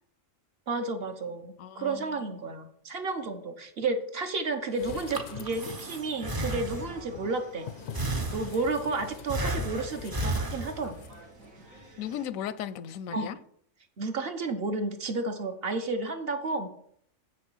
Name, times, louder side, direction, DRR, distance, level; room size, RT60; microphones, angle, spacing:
voice 1, 0.7-7.7 8.3-11.0 13.1-13.3 14.0-16.7, right 3 dB, 50° right, 1.1 m, -32 dB
voice 2, 1.6-2.4 12.0-13.4, left 9 dB, 85° left, 1.0 m, -37 dB
sound 1, 4.7-6.0 6.6-11.1 11.4-11.5, left 9 dB, 65° left, 0.5 m, -44 dB
Breathing, 4.9-7.2 7.9-8.9 9.3-11.1, right 1 dB, 25° right, 0.4 m, -33 dB
sound 2, 5.4-12.2, right 1 dB, 85° right, 1.8 m, -51 dB
7.7 x 6.6 x 5.5 m
omnidirectional pair, 1.4 m